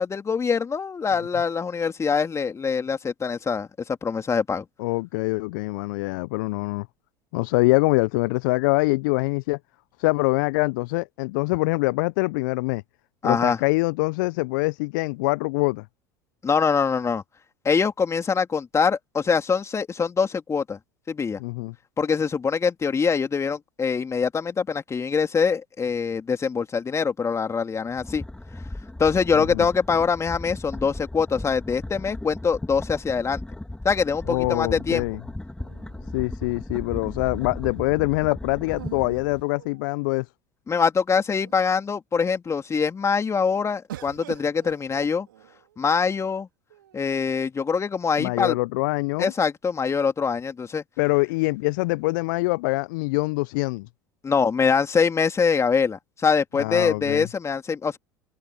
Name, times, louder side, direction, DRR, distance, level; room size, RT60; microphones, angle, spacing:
voice 1, 0.0-4.6 13.2-13.6 16.4-17.2 17.6-20.8 21.1-21.4 22.0-28.2 29.0-33.4 33.8-35.0 40.7-45.3 45.8-46.5 46.9-48.6 49.2-50.8 54.2-58.0, left 5 dB, 25° left, 3.2 m, -24 dB
voice 2, 4.8-6.9 7.3-9.6 10.0-12.8 13.2-15.9 21.4-21.7 29.5-29.7 34.3-35.2 36.1-40.3 48.2-49.3 51.0-53.9 56.5-57.3, left 25 dB, 65° left, 0.8 m, -24 dB
sound 1, 27.9-39.4, left 1 dB, 5° left, 3.5 m, -37 dB
sound 2, 35.6-36.7 38.7-40.2 40.9-41.0 41.3-41.9 43.9-45.8 46.7-47.4, right 13 dB, 75° right, 4.6 m, -44 dB
figure-of-eight pair, 70°, 11 cm